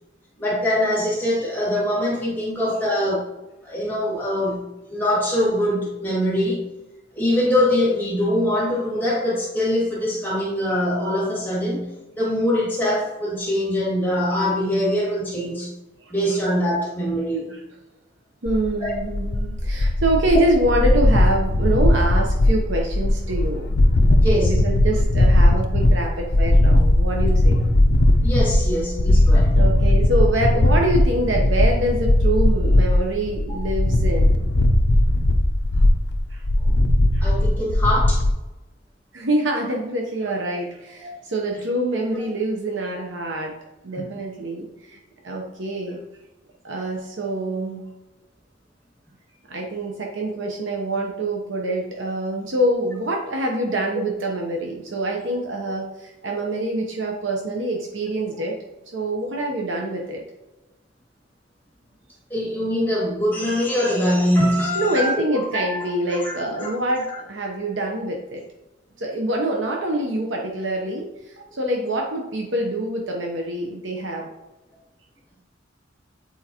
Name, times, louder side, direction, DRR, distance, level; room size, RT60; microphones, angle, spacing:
voice 1, 0.4-3.2 3.6-6.7 7.1-11.9 12.1-15.7 16.1-17.5 18.8-19.0 24.2-24.5 28.2-29.5 33.5-33.6 36.6-36.7 37.2-38.2 41.0-41.1 44.0-44.1 50.3-50.5 62.3-66.7, left 1 dB, 10° left, -7 dB, 2.2 m, -23 dB
voice 2, 18.4-23.7 24.0-27.7 29.5-34.5 36.3-36.4 37.1-37.3 39.1-43.5 43.8-46.0 46.6-47.9 49.5-58.6 58.9-60.2 64.7-68.4 69.0-74.3, right 1 dB, 75° right, 0 dB, 0.9 m, -25 dB
sound 1, 18.5-38.3, left 1 dB, 65° left, 0.7 m, -18 dB
8.2 x 4.5 x 3.0 m, 1.0 s
head